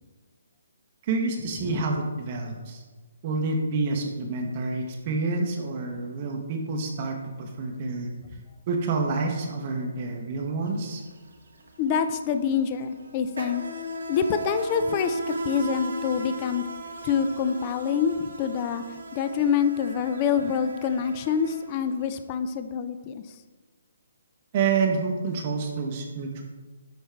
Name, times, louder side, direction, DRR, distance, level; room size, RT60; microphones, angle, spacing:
voice 1, 1.0-2.8 3.2-8.1 8.7-11.0 24.5-26.4, right 4 dB, 35° right, 2 dB, 0.7 m, -28 dB
Insect, 10.7-10.8 11.1-22.1, right 2 dB, 80° right, 1.0 m, -37 dB
voice 2, 11.8-13.6 14.1-16.6 17.0-18.8 19.1-23.2, left 7 dB, 30° left, 9 dB, 0.4 m, -26 dB
6.5 x 4.5 x 3.3 m, 1.3 s
hypercardioid pair, 155°, 0 cm